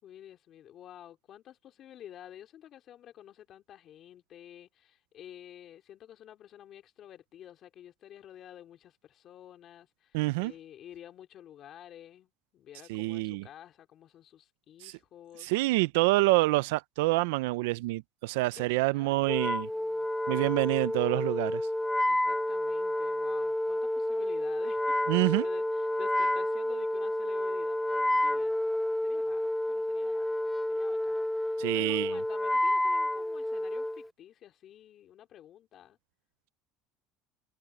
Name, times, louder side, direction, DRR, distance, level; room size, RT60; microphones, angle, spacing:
voice 1, 0.0-15.5 18.6-19.2 19.7-20.1 22.0-25.0 25.4-28.6 29.0-30.3 30.7-36.0, left 11 dB, 45° left, 3.1 m, -50 dB
voice 2, 10.1-10.5 12.9-13.5 14.8-14.9 15.4-19.7 20.3-21.6 25.1-25.5 31.6-32.2, right 21 dB, 90° right, 0.5 m, -27 dB
Wind instrument woodwind instrument, 19.3-34.0, left 1 dB, 5° left, 1.0 m, -30 dB
supercardioid pair, 120°, 0 cm